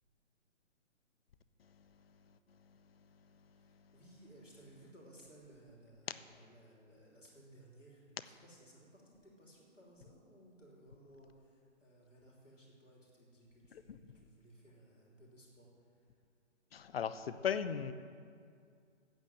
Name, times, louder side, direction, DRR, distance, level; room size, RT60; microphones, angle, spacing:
voice 1, 3.5-16.0, right 1 dB, 85° left, 3.1 m, -60 dB
voice 2, 16.7-17.9, left 7 dB, 55° left, 0.7 m, -37 dB
9.0 x 7.5 x 7.7 m
figure-of-eight pair, 135°, 36 cm